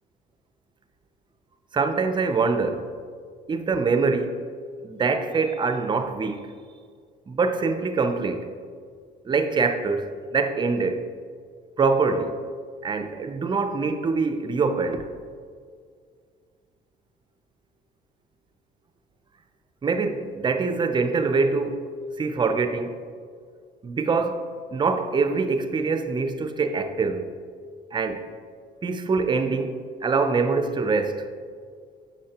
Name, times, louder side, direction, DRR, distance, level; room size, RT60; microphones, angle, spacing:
voice 1, 1.7-2.9 3.5-4.4 4.8-6.5 7.3-8.5 9.2-11.1 11.8-12.4 12.8-15.1 19.8-21.9 22.2-23.0 23.8-24.4 24.7-27.3 27.9-28.3 28.8-31.3, right 4 dB, 25° right, 0.5 m, -24 dB
9.8 x 6.3 x 2.9 m
cardioid pair, 110°, 17 cm